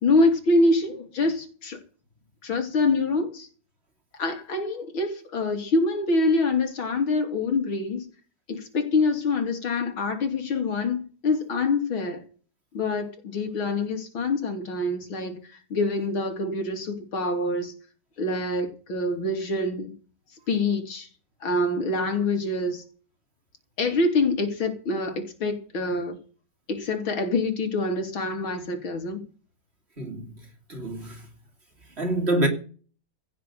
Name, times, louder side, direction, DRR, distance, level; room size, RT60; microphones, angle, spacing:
voice 1, 0.0-1.8 2.4-3.5 4.1-8.1 8.5-12.2 12.7-17.7 18.2-19.9 20.5-21.1 21.4-22.8 23.8-26.2 26.7-29.2, left 2 dB, 90° left, 3.7 m, -25 dB
voice 2, 30.0-30.3 30.7-31.2 32.0-32.5, right 1 dB, 30° right, 3.0 m, -26 dB
16.5 x 6.7 x 7.8 m
omnidirectional pair, 2.1 m